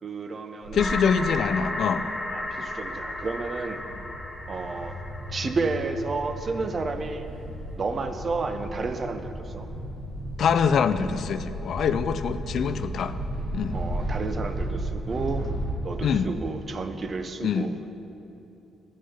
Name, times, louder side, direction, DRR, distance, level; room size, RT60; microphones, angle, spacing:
voice 1, 0.0-1.0 2.3-3.8 4.5-5.0 5.3-7.3 7.8-9.7 13.7-15.4 15.8-17.7, right 3 dB, 40° right, 8 dB, 0.6 m, -31 dB
sound 1, 0.6-15.7, right 1 dB, 65° right, 1.6 m, -35 dB
voice 2, 0.7-2.1 10.4-13.1 13.5-13.8 16.0-16.3 17.4-17.7, left 6 dB, 65° left, 11 dB, 0.3 m, -24 dB
sound 2, 0.8-6.5, left 2 dB, 15° left, 0.9 m, -34 dB
9.6 x 6.3 x 5.5 m, 2.9 s
cardioid pair, 90°, 0 cm